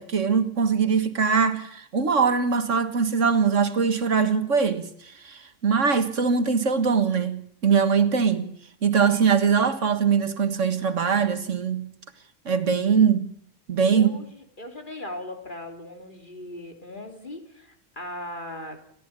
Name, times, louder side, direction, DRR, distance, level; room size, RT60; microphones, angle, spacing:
voice 1, 0.0-4.9 5.2-8.5 8.8-11.9 12.5-13.3 13.7-14.1, right 6 dB, 90° right, 2.0 m, -22 dB
voice 2, 13.9-18.8, left 1 dB, 40° left, 3.6 m, -38 dB
29.5 x 13.5 x 8.9 m
omnidirectional pair, 1.3 m